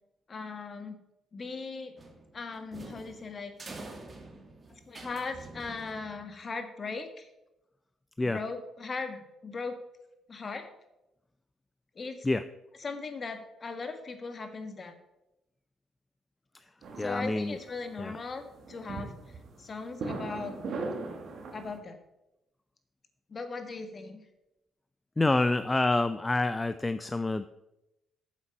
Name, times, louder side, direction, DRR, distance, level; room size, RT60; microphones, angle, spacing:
voice 1, 0.3-1.0 1.3-1.9 2.3-3.5 4.2-4.3 4.7-7.3 8.2-9.8 10.3-10.7 11.9-12.3 12.8-14.9 17.0-20.5 21.5-22.0 23.3-24.2, left 4 dB, 40° left, 7 dB, 1.5 m, -38 dB
sound 1, 2.0-6.4, right 2 dB, 35° right, 2.0 m, -47 dB
sound 2, 16.8-21.8, right 3 dB, 65° right, 1.8 m, -39 dB
voice 2, 17.0-17.6 18.0-18.1 25.2-27.5, left 2 dB, 15° left, 11 dB, 0.4 m, -27 dB
8.6 x 7.3 x 5.4 m, 0.90 s
cardioid pair, 90°, 0 cm